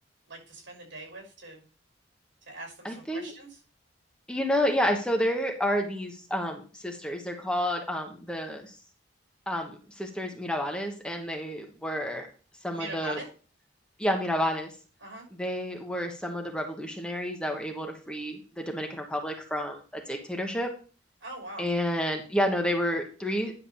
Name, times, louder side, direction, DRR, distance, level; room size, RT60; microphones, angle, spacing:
voice 1, 0.3-1.6 2.4-3.6 12.7-13.3 15.0-15.3 21.2-21.7, right 2 dB, 80° right, 1 dB, 5.9 m, -42 dB
voice 2, 2.8-3.3 4.3-8.8 9.5-12.3 12.6-13.2 14.0-14.7 15.4-20.7 21.6-23.5, equal, 5° left, 2 dB, 1.2 m, -30 dB
10.5 x 3.5 x 6.9 m, 0.36 s
head